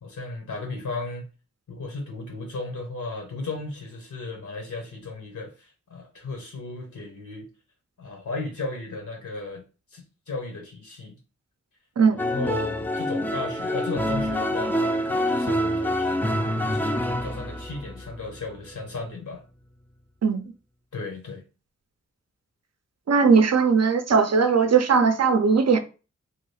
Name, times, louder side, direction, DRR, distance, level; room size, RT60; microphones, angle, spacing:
voice 1, 0.0-1.3 1.7-7.5 8.0-9.6 9.9-11.2 12.1-16.2 16.6-19.4 20.9-21.4, left 3 dB, 80° left, 0.9 m, -35 dB
sound 1, 12.2-19.1, equal, 5° left, 0.3 m, -26 dB
voice 2, 23.1-25.8, right 5 dB, 60° right, 0.5 m, -19 dB
2.9 x 2.3 x 3.1 m
wide cardioid pair, 70°, 29 cm